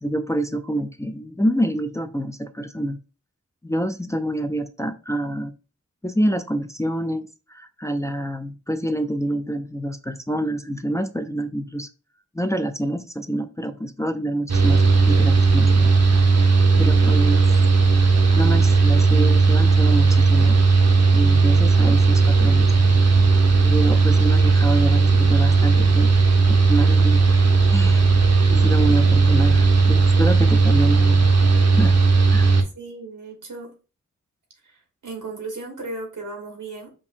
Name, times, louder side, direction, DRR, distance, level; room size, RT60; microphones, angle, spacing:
voice 1, 0.0-3.0 3.6-5.5 6.0-11.9 12.3-15.9 16.8-17.4 18.3-20.6 21.1-23.0 23.6-27.2 27.7-28.1 28.5-31.3 31.7-32.0 32.3-32.5, right 1 dB, 10° left, 6 dB, 0.4 m, -27 dB
Mechanical fan, 14.5-32.6, right 4 dB, 60° right, 0.7 m, -16 dB
voice 2, 32.7-33.7 34.6-36.9, right 3 dB, 90° right, 2 dB, 1.3 m, -36 dB
5.2 x 2.6 x 2.5 m, 0.33 s
cardioid pair, 45°, 30 cm